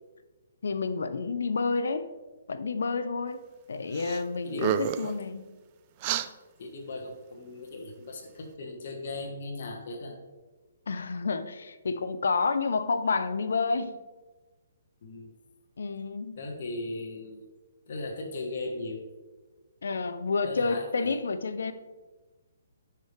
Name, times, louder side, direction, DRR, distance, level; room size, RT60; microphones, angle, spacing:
voice 1, 0.6-2.1 2.5-5.4 10.9-13.9 15.8-16.4 19.8-21.7, left 4 dB, 80° left, 11 dB, 0.6 m, -29 dB
sound 1, 3.9-4.2 4.5-5.1 6.0-6.3, right 10 dB, 30° right, 0.3 m, -29 dB
voice 2, 6.6-10.2 15.0-15.3 16.4-17.5 17.9-19.1 20.5-21.2, left 2 dB, 55° left, 0 dB, 1.3 m, -38 dB
10.5 x 4.7 x 3.3 m, 1.2 s
hypercardioid pair, 160°, 0 cm